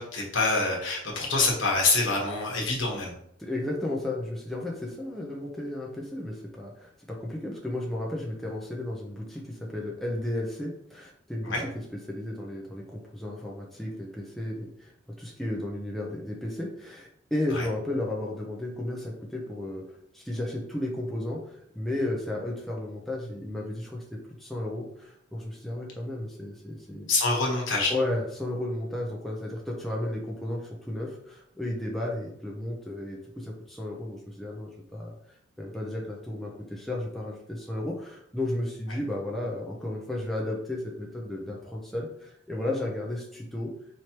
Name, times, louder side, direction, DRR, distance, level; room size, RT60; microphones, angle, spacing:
voice 1, 0.0-3.1 11.4-11.6 17.5-17.6 27.1-27.9, left 3 dB, 75° left, -1 dB, 1.2 m, -26 dB
voice 2, 3.4-14.9 15.2-27.1 27.9-35.1 35.6-43.7, left 1 dB, ahead, -4 dB, 0.6 m, -33 dB
4.6 x 3.1 x 2.9 m, 0.70 s
head